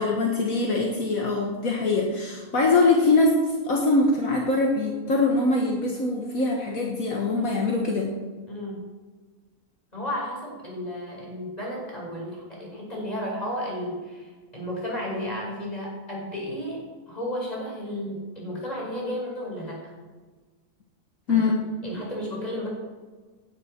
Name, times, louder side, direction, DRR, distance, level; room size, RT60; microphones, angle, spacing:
voice 1, 0.0-8.1 21.3-21.6, left 3 dB, 65° left, -1 dB, 2.0 m, -23 dB
voice 2, 8.5-8.9 9.9-19.9 21.3-21.5 21.8-22.7, equal, 25° left, -3 dB, 5.3 m, -33 dB
17.0 x 11.0 x 4.5 m, 1.4 s
omnidirectional pair, 1.6 m